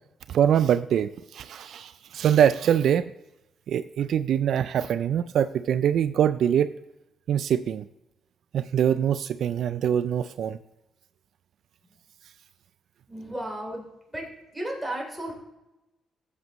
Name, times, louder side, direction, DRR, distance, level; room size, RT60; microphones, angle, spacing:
voice 1, 0.3-3.1 3.7-6.7 7.3-7.9 8.5-10.6, right 9 dB, 70° right, 13 dB, 0.3 m, -23 dB
voice 2, 13.1-13.8 14.1-14.3 14.5-15.3, right 1 dB, 5° right, -1 dB, 3.2 m, -33 dB
14.0 x 8.1 x 3.0 m, 0.95 s
cardioid pair, 90°, 0 cm